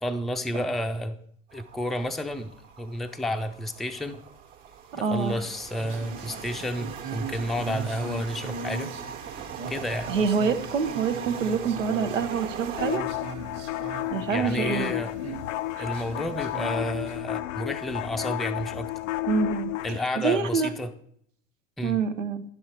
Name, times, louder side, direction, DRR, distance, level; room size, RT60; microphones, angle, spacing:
voice 1, 0.0-1.2 1.5-2.5 2.8-4.2 5.0-8.9 9.7-10.1 14.3-15.2 15.8-18.9 19.8-20.9 21.8-22.0, left 1 dB, ahead, 6 dB, 0.5 m, -31 dB
sound 1, 1.5-13.0, right 8 dB, 55° right, 1.4 m, -40 dB
voice 2, 4.9-5.4 10.1-13.0 14.1-14.9 15.7-15.9 19.3-19.7 20.2-20.7 21.8-22.4, right 5 dB, 90° right, 8 dB, 0.8 m, -26 dB
sound 2, 5.2-17.2, right 3 dB, 40° right, 1.3 m, -40 dB
sound 3, 12.8-20.0, left 16 dB, 75° left, 0.5 m, -32 dB
9.8 x 6.4 x 4.3 m, 0.64 s
hypercardioid pair, 80°, 38 cm